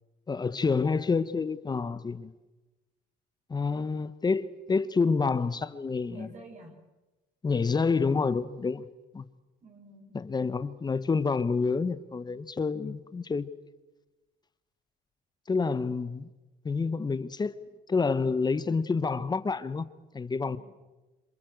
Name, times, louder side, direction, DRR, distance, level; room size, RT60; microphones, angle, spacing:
voice 1, 0.3-2.3 3.5-6.3 7.4-8.9 9.1-9.3 10.1-13.5 15.5-16.3 16.6-17.6 17.9-19.9 20.1-20.6, left 4 dB, 25° left, 1.3 m, -28 dB
voice 2, 6.1-6.8 9.6-10.2 20.4-20.6, right 2 dB, 45° right, 6.6 m, -48 dB
27.5 x 27.0 x 8.0 m
cardioid pair, 110°, 17 cm